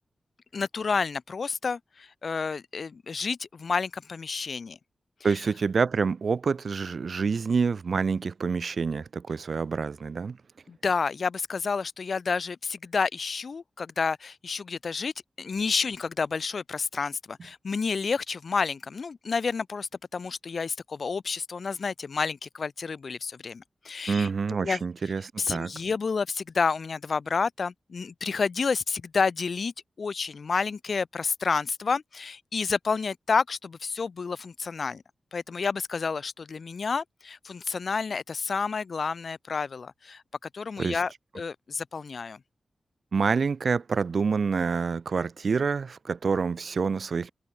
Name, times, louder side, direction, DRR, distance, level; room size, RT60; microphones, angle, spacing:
voice 1, 0.5-4.8 5.3-5.4 10.7-15.1 15.4-24.3 24.6-24.8 25.4-35.0 35.3-40.2 40.5-42.4, left 5 dB, 50° left, 1.4 m, -30 dB
voice 2, 5.2-10.4 24.1-25.2 25.5-25.7 40.8-41.0 43.1-47.3, right 5 dB, 55° right, 0.7 m, -27 dB
wide cardioid pair, 150°, 0 cm